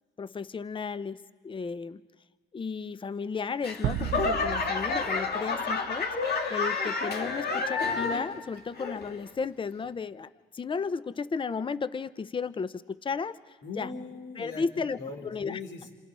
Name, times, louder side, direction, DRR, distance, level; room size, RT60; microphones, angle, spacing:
voice 1, 0.2-2.0 2.5-13.9 14.4-15.0 15.2-15.6, left 5 dB, 25° left, 15 dB, 0.7 m, -34 dB
Laughter / Clapping / Crowd, 3.6-8.4 8.7-9.3 9.8-9.9, left 4 dB, 55° left, 2.4 m, -30 dB
sound 1, 3.8-6.3, right 12 dB, 80° right, 0.6 m, -35 dB
voice 2, 13.6-15.9, left 4 dB, 70° left, 3 dB, 4.2 m, -40 dB
28.0 x 27.5 x 5.5 m, 1.5 s
cardioid pair, 90°, 20 cm